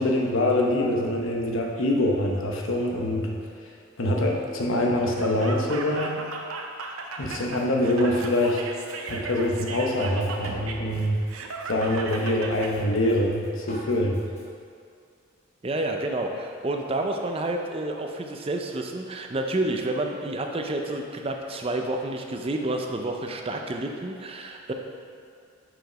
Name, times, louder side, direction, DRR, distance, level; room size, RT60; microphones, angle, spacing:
voice 1, 0.0-3.4 4.0-6.2 7.2-8.6 9.1-11.2 11.7-14.2, left 1 dB, 65° left, 0 dB, 0.9 m, -24 dB
Laughter, 5.0-12.7, right 3 dB, 80° right, 0.6 m, -36 dB
Drum kit, 7.2-14.4, equal, 30° left, 1.3 m, -43 dB
voice 2, 15.6-24.7, right 2 dB, 25° right, 3 dB, 0.5 m, -29 dB
6.4 x 5.0 x 5.0 m, 2.3 s
head